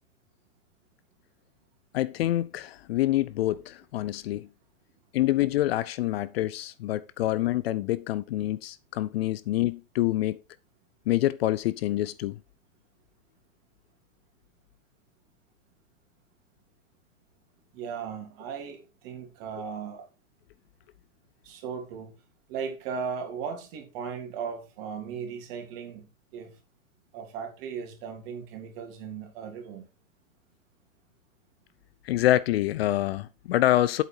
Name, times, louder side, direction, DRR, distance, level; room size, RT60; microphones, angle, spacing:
voice 1, 1.9-4.5 5.1-10.4 11.1-12.4 32.0-34.0, left 15 dB, 50° left, 0.5 m, -26 dB
voice 2, 17.7-20.0 21.4-22.1 22.5-26.1 26.3-26.5 27.1-29.9, right 6 dB, 45° right, 3.1 m, -37 dB
8.1 x 6.9 x 4.5 m
hypercardioid pair, 115°, 40 cm